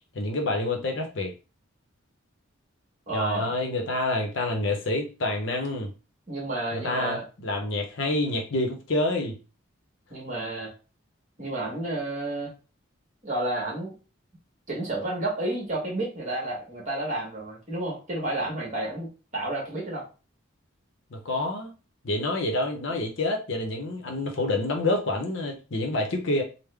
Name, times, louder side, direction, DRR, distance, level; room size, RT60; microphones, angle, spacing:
voice 1, 0.1-1.3 3.1-5.9 6.7-9.4 21.1-21.7 22.0-26.4, left 2 dB, 60° left, 0.7 m, -27 dB
voice 2, 3.1-3.5 6.3-7.2 10.1-10.7 11.4-12.5 13.2-14.0 14.7-20.0, right 2 dB, 35° right, 1.4 m, -31 dB
3.5 x 2.1 x 3.3 m
head